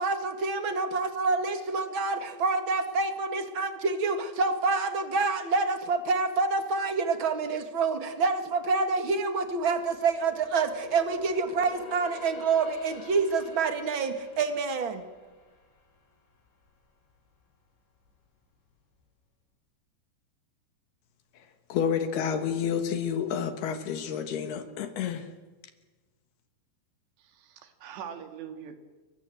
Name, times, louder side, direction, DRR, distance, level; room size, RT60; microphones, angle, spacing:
voice 1, 0.0-15.0, right 4 dB, 45° right, 1.6 m, -27 dB
sound 1, 9.4-16.8 17.2-17.4 18.0-18.7 19.0-19.1, left 4 dB, 90° left, 6.4 m, -49 dB
voice 2, 21.7-25.3, left 7 dB, 70° left, 3.3 m, -29 dB
voice 3, 27.2-28.8, right 8 dB, 80° right, 4.2 m, -42 dB
29.0 x 23.0 x 7.8 m
omnidirectional pair, 5.0 m